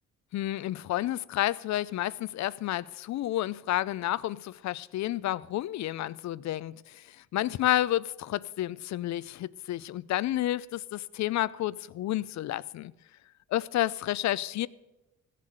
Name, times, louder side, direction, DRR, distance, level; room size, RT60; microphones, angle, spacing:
voice 1, 0.3-12.9 13.5-14.7, left 14 dB, 65° left, 0.5 m, -30 dB
16.0 x 7.5 x 7.8 m
cardioid pair, 90°, 30 cm